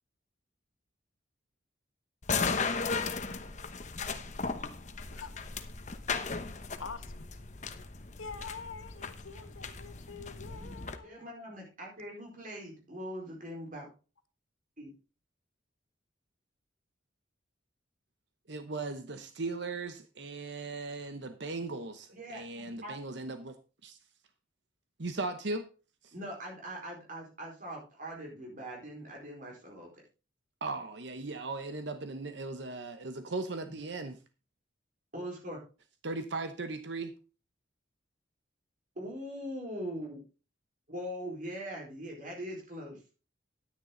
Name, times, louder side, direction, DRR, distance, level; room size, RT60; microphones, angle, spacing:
sound 1, 2.2-11.0, left 4 dB, 35° left, 0.9 m, -36 dB
voice 1, 6.8-7.3 8.2-11.5, left 5 dB, 90° left, 9 dB, 1.4 m, -46 dB
voice 2, 11.0-13.9 14.8-14.9 22.1-23.0 26.1-29.9 35.1-35.6 38.9-40.2 40.9-43.0, equal, 40° right, -1 dB, 4.6 m, -41 dB
voice 3, 18.5-23.6 23.8-24.0 25.0-25.7 26.0-26.1 30.6-34.2 36.0-37.1, right 3 dB, 60° right, 9 dB, 0.9 m, -38 dB
10.5 x 9.8 x 3.9 m, 0.34 s
head